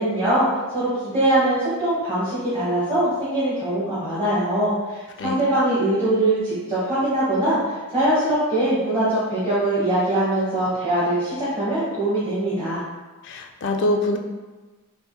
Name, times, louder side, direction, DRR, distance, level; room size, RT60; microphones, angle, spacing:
voice 1, 0.0-12.8, right 1 dB, 25° right, -11 dB, 1.1 m, -22 dB
voice 2, 13.2-14.2, left 1 dB, 55° left, 4 dB, 0.4 m, -24 dB
5.4 x 2.5 x 2.3 m, 1.2 s
head